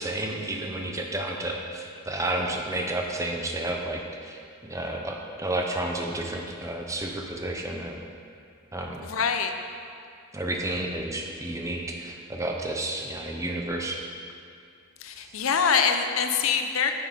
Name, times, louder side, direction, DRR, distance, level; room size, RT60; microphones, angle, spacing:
voice 1, 0.0-8.0 8.7-9.1 10.3-14.0, right 1 dB, 15° right, 1 dB, 0.7 m, -31 dB
voice 2, 9.0-9.5 15.0-16.9, left 6 dB, 80° left, 6 dB, 0.6 m, -24 dB
9.1 x 6.3 x 5.3 m, 2.4 s
head